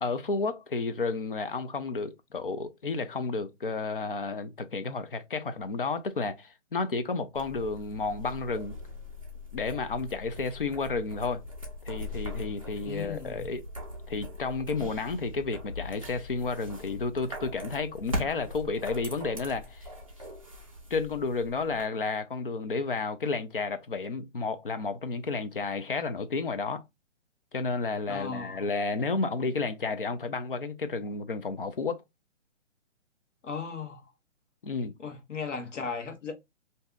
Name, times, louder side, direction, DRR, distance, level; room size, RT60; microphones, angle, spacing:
voice 1, 0.0-8.8 9.5-11.4 11.9-13.6 14.1-19.9 20.9-26.8 27.5-32.0 34.6-34.9, left 4 dB, 45° left, 0.5 m, -31 dB
sound 1, 7.3-21.9, left 1 dB, 30° right, 0.5 m, -41 dB
voice 2, 12.8-13.5 28.1-28.6 33.4-34.1 35.0-36.3, left 5 dB, 70° left, 1.2 m, -36 dB
2.7 x 2.3 x 3.6 m
hypercardioid pair, 175°, 37 cm